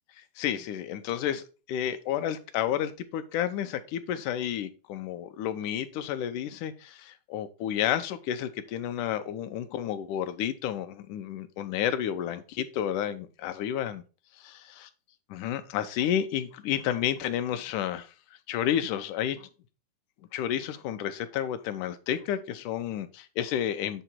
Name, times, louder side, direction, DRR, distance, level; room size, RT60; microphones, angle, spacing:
voice 1, 0.4-1.4 1.7-14.0 15.3-18.1 18.5-19.5 20.3-24.0, left 10 dB, 80° left, 10 dB, 2.1 m, -31 dB
8.0 x 3.7 x 4.3 m, 0.34 s
omnidirectional pair, 3.6 m